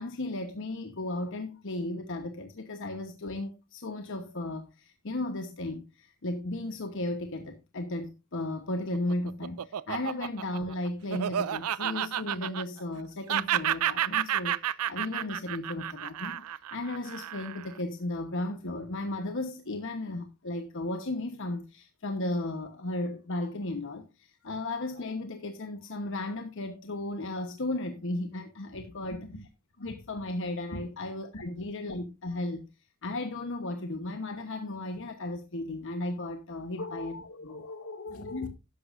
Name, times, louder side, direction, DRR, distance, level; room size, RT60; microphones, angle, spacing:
voice 1, 0.0-29.2 29.8-32.6 33.0-37.1 37.4-37.6 38.3-38.5, left 2 dB, 60° left, 1.1 m, -35 dB
Laughter, 8.8-13.0 13.3-17.7, right 10 dB, 85° right, 0.5 m, -31 dB
voice 2, 29.1-29.4 30.7-30.8 31.3-31.5 36.8-38.5, left 2 dB, 85° left, 2.2 m, -41 dB
13.0 x 10.5 x 2.6 m
head